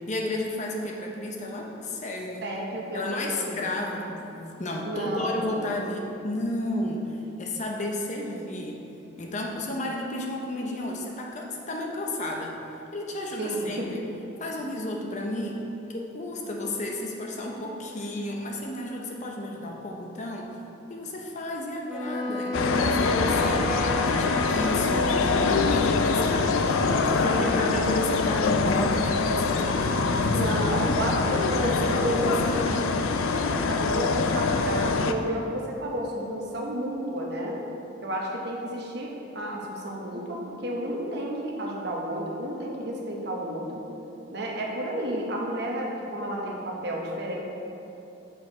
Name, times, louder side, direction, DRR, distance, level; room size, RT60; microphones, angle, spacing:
voice 1, 0.1-2.5 2.9-8.8 9.2-12.5 12.9-14.1 14.4-15.6 15.9-20.6 20.9-31.2 31.6-32.9, left 1 dB, 35° left, 0 dB, 0.7 m, -32 dB
voice 2, 2.4-3.0 3.3-3.6 4.8-5.6 13.4-13.9 27.2-27.8 30.3-32.6 33.3-37.6 38.0-43.8 44.3-47.4, right 1 dB, 55° right, -2 dB, 1.0 m, -31 dB
Wind instrument woodwind instrument, 21.9-26.0, equal, 5° right, 0.4 m, -32 dB
sound 1, 22.5-35.1, left 4 dB, 80° left, 0.4 m, -24 dB
6.4 x 4.7 x 4.8 m, 2.9 s
head